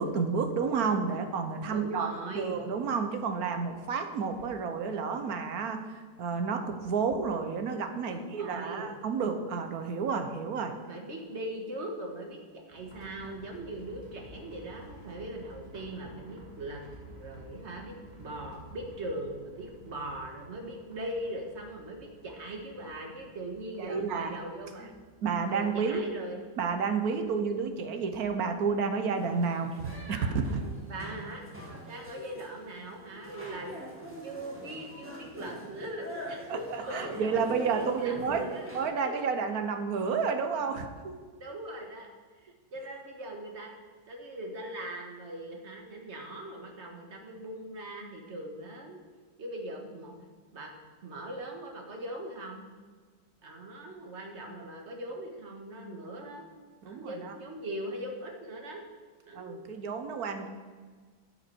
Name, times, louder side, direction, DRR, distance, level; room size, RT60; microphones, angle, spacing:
voice 1, 0.0-2.1 2.3-10.7 23.8-24.3 24.8-24.9 25.2-26.0 26.6-30.6 36.5-38.5 38.7-41.1 56.8-57.3 59.3-60.5, right 5 dB, 65° right, 6 dB, 1.3 m, -31 dB
voice 2, 1.7-2.7 8.1-8.9 10.9-16.8 17.1-24.9 25.4-26.4 30.9-31.4 31.9-33.7 34.2-38.7 39.0-39.2 41.4-42.1 42.4-43.7 44.1-49.0 49.4-50.1 50.5-50.7 51.0-52.6 53.4-56.5 56.9-58.8 59.3-59.6, right 1 dB, 40° right, 1 dB, 1.7 m, -40 dB
sound 1, 12.7-28.2 28.4-28.5 28.9-29.0, right 1 dB, 25° right, 1.9 m, -52 dB
sound 2, 29.2-38.8, equal, 5° right, 2.0 m, -44 dB
12.0 x 7.3 x 4.5 m, 1.5 s
omnidirectional pair, 1.8 m